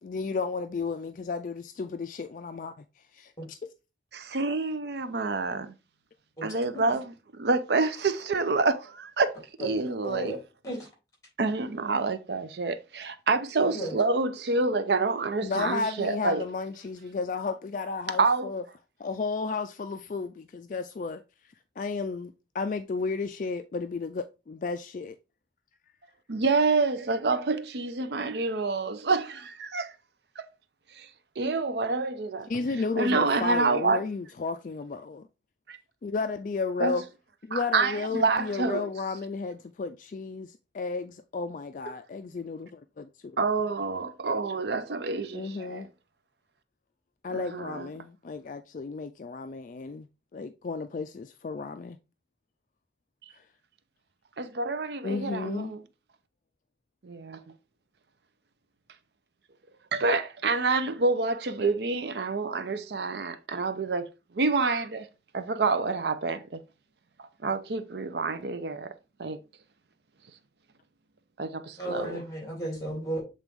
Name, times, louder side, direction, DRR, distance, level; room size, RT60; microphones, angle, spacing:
voice 1, 0.0-2.8 3.1-3.6 15.4-18.6 19.0-21.2 21.8-25.2 32.5-35.3 36.0-37.0 37.4-43.4 45.3-45.9 47.2-50.1 50.3-52.0 53.3-53.4 55.0-55.7, left 4 dB, 45° left, 0.3 m, -33 dB
voice 2, 4.1-5.7 6.4-7.0 7.4-9.3 9.6-10.3 11.4-16.4 18.2-18.5 26.3-29.9 30.4-30.5 31.0-31.1 31.4-32.5 33.0-34.0 35.7-35.8 36.8-37.0 37.5-38.9 43.4-45.9 47.3-47.9 54.4-55.8 57.0-57.4 59.9-64.1 64.3-65.1 65.3-66.4 67.2-68.9 69.2-69.4 71.4-72.2, right 3 dB, 70° right, 0.6 m, -27 dB
voice 3, 9.6-10.4 10.6-10.9 13.6-13.9 71.8-73.2, right 1 dB, 20° left, 3.1 m, -34 dB
7.5 x 3.9 x 3.5 m
head